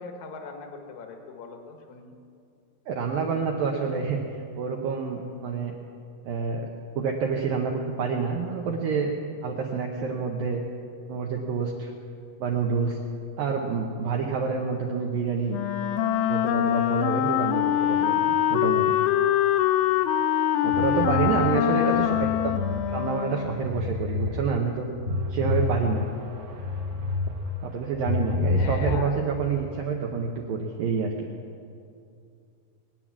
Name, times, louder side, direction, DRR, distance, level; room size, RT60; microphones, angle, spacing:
voice 1, 0.0-2.1 21.5-22.2 28.5-29.2, left 5 dB, 65° left, 4 dB, 1.9 m, -39 dB
voice 2, 2.9-5.7 6.3-6.7 7.0-9.1 9.4-10.7 11.1-11.9 12.4-13.0 13.4-15.6 16.2-18.9 20.6-21.8 22.9-24.9 25.3-26.1 27.6-31.3, right 5 dB, 75° right, 1 dB, 2.1 m, -28 dB
Wind instrument woodwind instrument, 15.5-23.7, left 12 dB, 85° left, 3.0 m, -24 dB
sound 1, 20.7-22.8 23.2-24.3 24.7-27.3 27.7-29.1, left 3 dB, 55° right, 2.3 m, -29 dB
21.5 x 9.3 x 7.3 m, 2.4 s
omnidirectional pair, 5.3 m